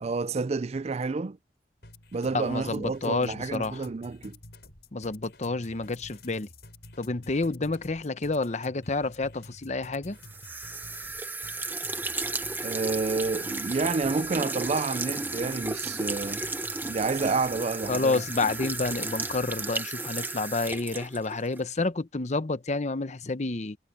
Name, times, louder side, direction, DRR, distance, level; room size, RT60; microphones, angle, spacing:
voice 1, 0.0-1.4 2.1-4.4 12.6-16.5 16.9-18.2, right 4 dB, 35° right, 0.4 m, -29 dB
sound 1, 1.8-19.6, left 2 dB, 65° left, 6.3 m, -50 dB
voice 2, 2.3-3.9 4.9-6.5 7.0-10.2 17.9-23.8, left 3 dB, 40° left, 0.9 m, -29 dB
sound 2, 10.2-21.6, right 3 dB, 10° right, 1.0 m, -34 dB
head